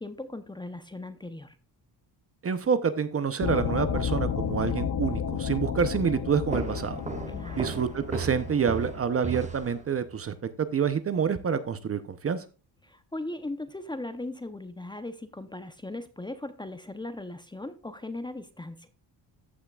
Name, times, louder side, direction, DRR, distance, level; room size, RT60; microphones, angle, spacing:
voice 1, 0.0-1.6 7.3-7.7 12.8-18.9, left 2 dB, 10° left, 10 dB, 0.7 m, -38 dB
voice 2, 2.4-7.0 7.6-12.4, right 6 dB, 30° right, 11 dB, 0.7 m, -27 dB
sound 1, 3.4-9.0, left 8 dB, 45° left, 0.9 m, -32 dB
sound 2, 6.5-10.2, right 4 dB, 15° right, 1.5 m, -36 dB
14.5 x 5.8 x 2.4 m, 0.33 s
cardioid pair, 120°, 44 cm